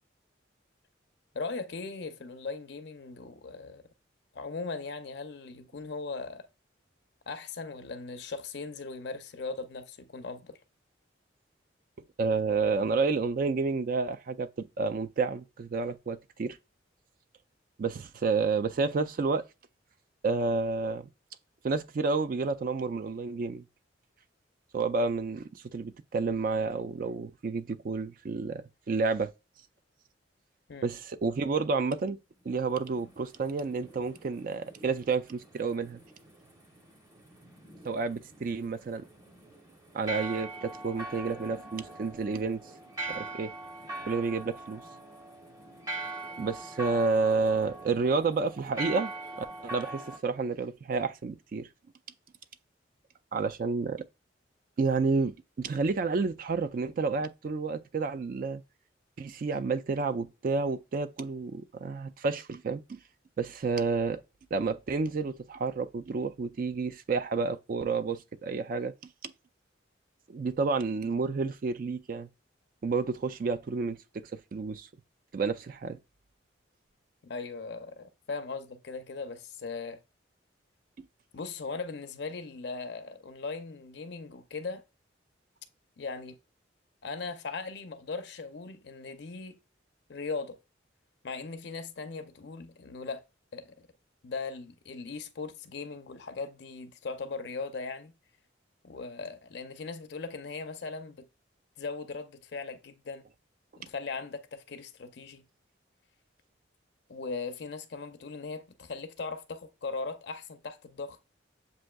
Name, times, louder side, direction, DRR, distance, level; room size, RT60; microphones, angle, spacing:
voice 1, 1.3-3.8 4.3-6.5 7.3-10.6 30.7-30.9 77.2-80.0 81.3-84.8 86.0-86.4 87.0-89.6 90.1-90.6 91.2-93.2 93.5-93.7 94.2-98.1 98.8-101.3 101.8-103.2 103.8-105.4 107.1-111.2, left 4 dB, 60° left, 0.5 m, -39 dB
voice 2, 12.2-16.6 17.8-19.4 20.2-21.1 21.6-23.6 24.7-29.3 30.8-32.2 32.5-36.0 37.8-39.0 39.9-42.6 43.1-43.5 44.1-44.8 46.4-49.1 49.4-51.7 53.3-54.0 54.8-58.6 59.2-63.0 63.4-64.2 64.5-68.9 69.2-69.3 70.3-72.3 72.8-74.0 74.5-74.9 75.3-76.0 81.0-81.1, right 4 dB, 45° right, 0.3 m, -30 dB
sound 1, 32.5-50.2, right 2 dB, 20° right, 0.8 m, -42 dB
7.4 x 2.6 x 2.2 m
head